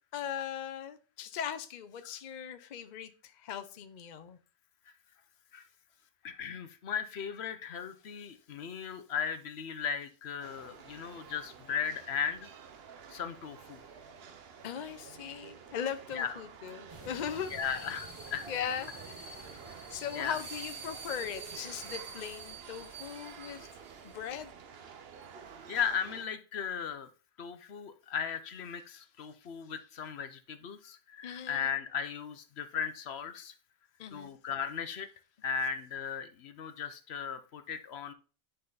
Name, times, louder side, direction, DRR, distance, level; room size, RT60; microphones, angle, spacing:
voice 1, 0.1-4.4 14.6-17.9 18.5-18.9 19.9-23.7 24.1-24.5 31.2-31.7 34.0-34.3, left 8 dB, 50° left, 10 dB, 0.6 m, -39 dB
voice 2, 6.2-12.5 13.1-13.8 16.1-16.3 17.5-18.4 20.1-20.4 25.7-27.1 27.4-33.5 34.1-35.1 35.4-38.1, left 7 dB, 65° left, 10 dB, 1.0 m, -36 dB
sound 1, 10.4-26.2, right 6 dB, 60° right, 0.9 m, -50 dB
sound 2, 16.9-24.5, right 4 dB, 25° right, 1.2 m, -47 dB
9.8 x 4.0 x 3.9 m, 0.36 s
omnidirectional pair, 1.2 m